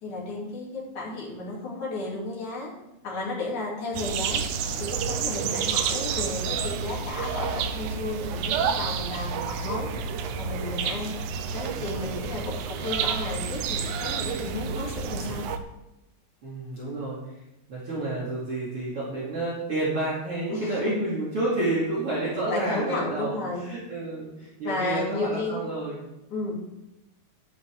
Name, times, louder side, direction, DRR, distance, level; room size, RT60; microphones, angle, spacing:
voice 1, 0.0-2.7 3.0-4.4 4.8-9.9 10.4-11.1 11.5-15.4 20.5-21.0 22.5-23.7 24.6-25.6 26.3-26.6, left 2 dB, 55° left, -4 dB, 4.1 m, -33 dB
sound 1, 3.9-15.6, right 6 dB, 75° right, 1.9 m, -29 dB
voice 2, 16.4-17.2 17.7-26.0, right 2 dB, 40° right, -7 dB, 3.3 m, -30 dB
12.0 x 11.5 x 3.6 m, 0.92 s
omnidirectional pair, 4.3 m